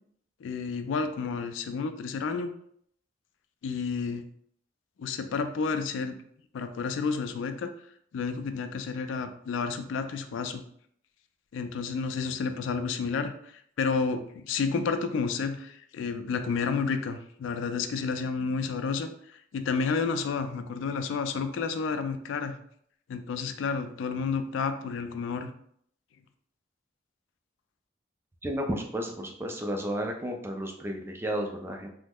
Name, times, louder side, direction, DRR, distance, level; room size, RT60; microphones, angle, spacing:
voice 1, 0.4-2.5 3.6-4.2 5.0-6.2 6.5-7.7 8.1-10.6 11.5-22.6 23.1-25.5, left 5 dB, 75° left, 8 dB, 0.3 m, -31 dB
voice 2, 28.4-31.9, equal, 10° right, 3 dB, 0.3 m, -32 dB
3.0 x 2.0 x 3.5 m, 0.66 s
head